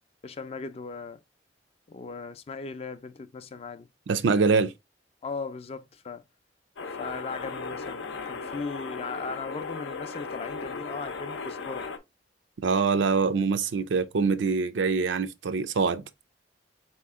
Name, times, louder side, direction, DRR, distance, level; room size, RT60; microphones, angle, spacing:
voice 1, 0.2-1.2 1.9-3.9 5.2-6.2 7.0-11.9, left 4 dB, 35° left, 0.3 m, -38 dB
voice 2, 4.1-4.7 12.6-16.0, right 4 dB, 85° right, 0.5 m, -24 dB
sound 1, 6.8-12.0, left 4 dB, 85° left, 0.6 m, -36 dB
4.1 x 2.9 x 3.5 m
head